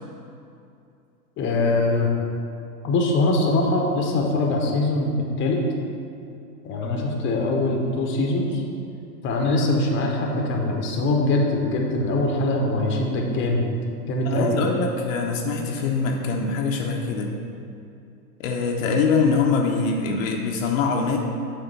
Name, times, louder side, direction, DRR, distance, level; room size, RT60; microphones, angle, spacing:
voice 1, 1.4-2.1 2.8-5.6 6.6-8.6 9.2-13.6 14.1-14.6, left 2 dB, 25° left, 0 dB, 0.9 m, -22 dB
voice 2, 14.2-17.3 18.4-21.2, left 4 dB, 55° left, 1 dB, 0.8 m, -24 dB
7.9 x 3.5 x 5.4 m, 2.6 s
hypercardioid pair, 110°, 49 cm